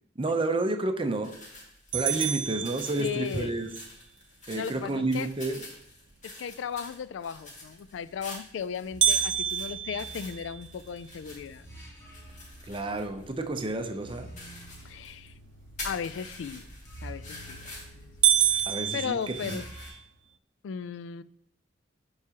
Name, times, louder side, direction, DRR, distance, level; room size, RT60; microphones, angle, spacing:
voice 1, 0.2-1.3 1.9-3.7 4.5-5.6 12.7-14.3 18.7-19.6, right 2 dB, 30° right, 6 dB, 0.7 m, -30 dB
sound 1, 1.2-19.9, left 2 dB, 40° left, 2.1 m, -47 dB
sound 2, 1.9-3.5 9.0-11.2 11.7-11.8 12.3-12.4 13.0-13.4 17.0-17.4 17.8-17.9 18.2-20.0, right 10 dB, 85° right, 0.6 m, -27 dB
voice 2, 3.0-3.5 4.5-5.3 6.2-11.7 14.8-15.3 15.8-16.7 17.0-17.6 17.9-18.1 18.9-19.7 20.6-21.2, left 7 dB, 90° left, 16 dB, 0.3 m, -36 dB
sound 3, 8.9-19.9, right 1 dB, 15° left, 3.0 m, -49 dB
12.0 x 4.8 x 2.9 m, 0.74 s
head